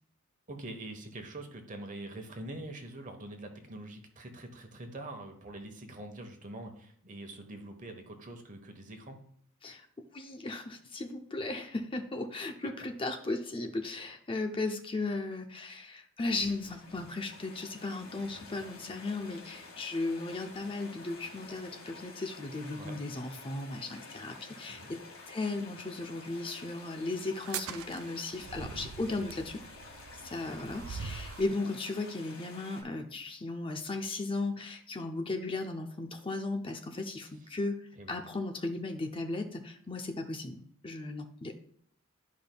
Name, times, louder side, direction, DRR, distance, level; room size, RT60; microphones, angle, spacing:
voice 1, 0.5-9.2 22.8-23.0 24.7-24.9 38.0-38.1, right 1 dB, 35° right, 5 dB, 1.1 m, -44 dB
voice 2, 10.1-29.6 30.1-41.5, left 2 dB, 25° left, 4 dB, 0.5 m, -36 dB
sound 1, 16.4-32.8, left 3 dB, 65° left, 1.9 m, -50 dB
sound 2, 27.4-31.6, right 7 dB, 75° right, 0.4 m, -43 dB
12.0 x 5.1 x 2.3 m, 0.64 s
head